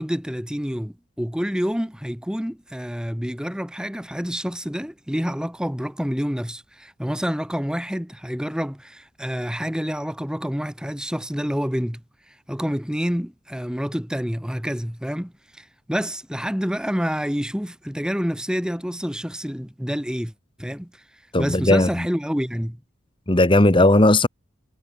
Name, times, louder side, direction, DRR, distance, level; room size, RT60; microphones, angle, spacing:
voice 1, 0.0-12.0 12.3-20.3 20.6-21.0 21.4-22.8, equal, 5° right, 1.8 m, -28 dB
voice 2, 21.3-22.0 23.3-24.3, left 1 dB, 25° left, 1.2 m, -16 dB
head